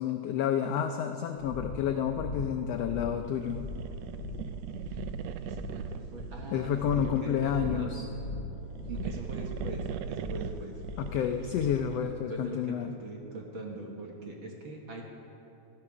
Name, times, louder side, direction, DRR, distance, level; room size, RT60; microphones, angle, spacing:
voice 1, 0.0-3.6 6.5-8.0 11.0-12.9, left 8 dB, 90° left, 6 dB, 1.4 m, -30 dB
sound 1, 1.4-11.9, left 2 dB, 45° left, 2.6 m, -40 dB
sound 2, 3.2-7.6 8.6-12.2, right 8 dB, 90° right, 1.4 m, -40 dB
voice 2, 5.4-6.7 6.9-7.9 8.9-10.8 12.3-15.0, right 2 dB, 55° right, 0 dB, 1.6 m, -42 dB
14.5 x 12.0 x 6.0 m, 2.9 s
omnidirectional pair, 3.5 m